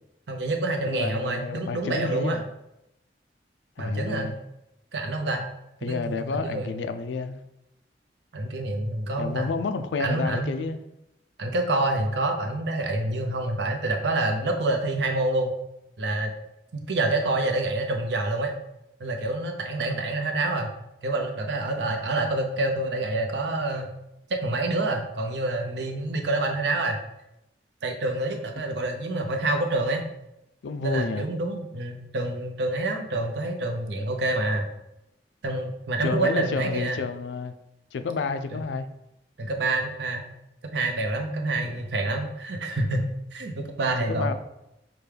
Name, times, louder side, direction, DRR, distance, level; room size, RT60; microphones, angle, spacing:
voice 1, 0.3-2.4 3.8-4.4 4.9-5.5 5.8-6.8 8.3-9.5 10.0-10.6 11.4-15.5 16.0-16.3 16.7-18.5 19.0-20.7 21.0-23.9 24.4-27.0 27.8-30.0 30.8-34.7 35.4-37.0 38.5-38.6 39.4-40.2 40.7-44.3, right 2 dB, 75° right, 0.6 m, -27 dB
voice 2, 0.8-2.4 3.8-4.3 5.8-7.4 9.2-10.8 19.9-20.1 30.6-31.3 36.0-37.5 37.9-38.9 41.6-41.8 44.1-44.3, left 4 dB, 80° left, 0.4 m, -30 dB
5.9 x 2.2 x 3.3 m
head